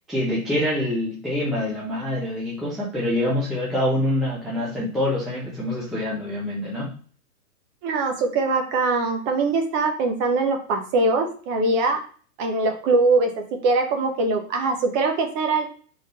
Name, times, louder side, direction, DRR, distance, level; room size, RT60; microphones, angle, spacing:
voice 1, 0.1-6.9, left 1 dB, ahead, -8 dB, 0.4 m, -25 dB
voice 2, 7.8-12.0 12.4-13.3 13.6-15.7, right 3 dB, 25° right, 4 dB, 0.8 m, -22 dB
3.8 x 3.2 x 4.1 m, 0.42 s
hypercardioid pair, 140°, 44 cm